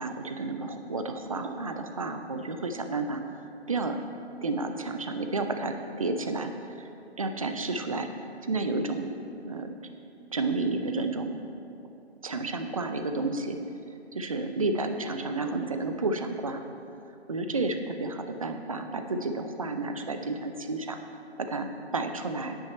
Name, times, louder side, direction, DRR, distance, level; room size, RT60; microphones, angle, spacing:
voice 1, 0.0-3.2 3.7-4.0 4.4-6.5 6.8-6.9 7.2-8.1 8.5-9.1 9.3-9.7 10.3-11.4 12.2-13.6 14.1-16.6 17.3-21.0 21.4-22.6, right 3 dB, 30° right, 7 dB, 0.5 m, -31 dB
9.2 x 8.7 x 4.2 m, 2.6 s
figure-of-eight pair, 150°, 34 cm